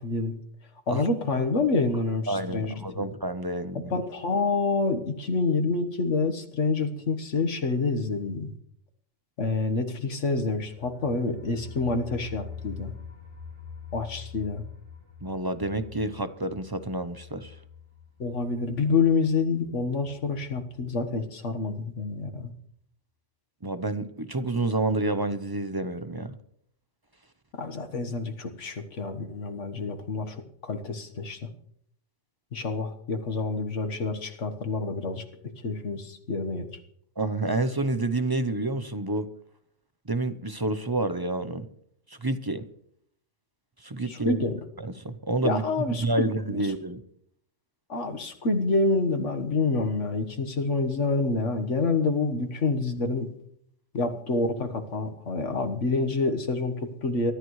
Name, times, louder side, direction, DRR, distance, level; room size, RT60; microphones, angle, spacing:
voice 1, 0.0-0.4 0.9-3.1 3.8-8.5 9.4-12.9 13.9-14.6 18.2-22.5 27.5-31.4 32.5-35.2 35.6-36.7 44.1-44.5 45.4-46.6 47.9-53.3 53.9-57.3, left 3 dB, 80° left, 1.7 m, -27 dB
voice 2, 2.3-3.9 15.2-17.5 23.6-26.4 37.2-39.3 40.1-41.7 42.1-42.7 43.8-44.5 44.8-45.6 46.0-47.0, right 2 dB, 25° right, 0.6 m, -29 dB
sound 1, 10.5-21.2 21.5-21.6 21.9-22.0, left 6 dB, 85° right, 3.8 m, -45 dB
23.0 x 13.5 x 3.2 m
omnidirectional pair, 1.2 m